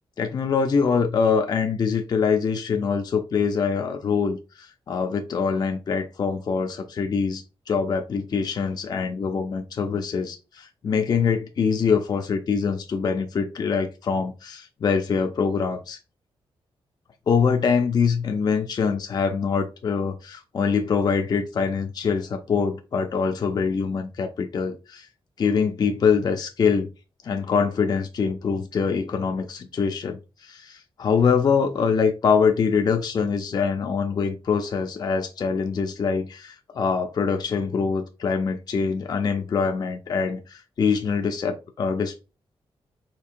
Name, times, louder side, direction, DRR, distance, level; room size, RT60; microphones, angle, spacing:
voice 1, 0.2-16.0 17.3-25.1 25.4-26.9 27.2-42.2, left 5 dB, 45° left, 0.4 m, -24 dB
4.5 x 2.8 x 2.5 m
wide cardioid pair, 145°, 10 cm